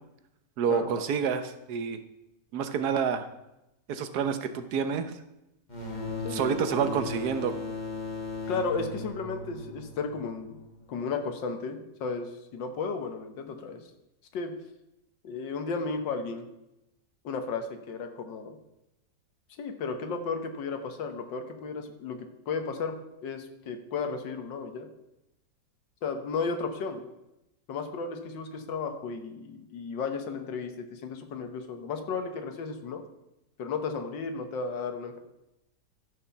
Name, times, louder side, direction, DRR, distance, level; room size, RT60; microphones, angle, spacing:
voice 1, 0.6-2.0 2.5-3.3 3.9-5.1 6.3-7.5, right 7 dB, 65° right, 10 dB, 1.3 m, -28 dB
Ship Horn Distant, 5.7-11.1, left 3 dB, 25° left, 2.0 m, -37 dB
voice 2, 8.5-10.6 10.9-13.8 14.3-14.5 15.2-16.5 17.2-18.6 19.6-23.0 23.2-24.9 26.0-27.1 27.7-33.0 33.6-35.2, left 4 dB, 85° left, 6 dB, 1.8 m, -34 dB
12.5 x 7.4 x 5.7 m, 0.92 s
omnidirectional pair, 1.9 m